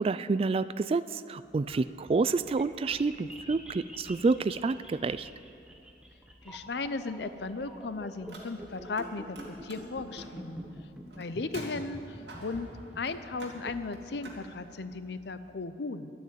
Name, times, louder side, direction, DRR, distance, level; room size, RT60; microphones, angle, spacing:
voice 1, 0.0-5.3, right 4 dB, 35° right, 15 dB, 0.3 m, -28 dB
sound 1, 1.7-15.6, equal, 5° right, 1.1 m, -47 dB
voice 2, 6.4-9.4 9.6-10.6 11.2-12.7 13.0-16.1, left 3 dB, 65° left, 12 dB, 0.7 m, -36 dB
Car, 8.2-9.1 9.3-14.4, right 1 dB, 70° right, 2.4 m, -47 dB
12.0 x 9.4 x 9.2 m, 2.6 s
head